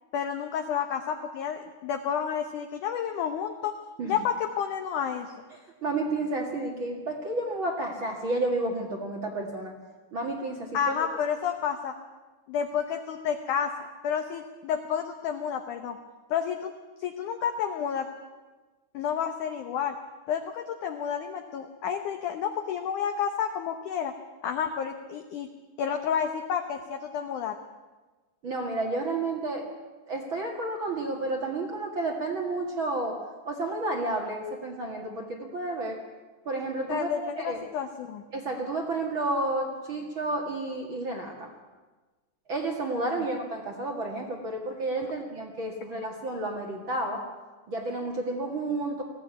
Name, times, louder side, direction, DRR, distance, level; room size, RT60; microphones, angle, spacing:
voice 1, 0.1-3.7 4.0-5.3 10.7-11.9 12.5-13.7 14.0-16.0 16.3-16.7 17.0-18.1 18.9-20.0 20.3-24.1 24.4-25.5 25.8-27.6 36.9-38.2, left 8 dB, 70° left, 5 dB, 1.9 m, -30 dB
voice 2, 5.8-9.7 10.1-10.9 28.4-29.7 30.1-33.2 33.4-36.0 36.4-37.6 38.3-41.5 42.5-47.2 47.7-49.0, right 2 dB, 45° right, 2 dB, 1.7 m, -31 dB
20.0 x 15.0 x 9.6 m, 1.3 s
omnidirectional pair, 4.8 m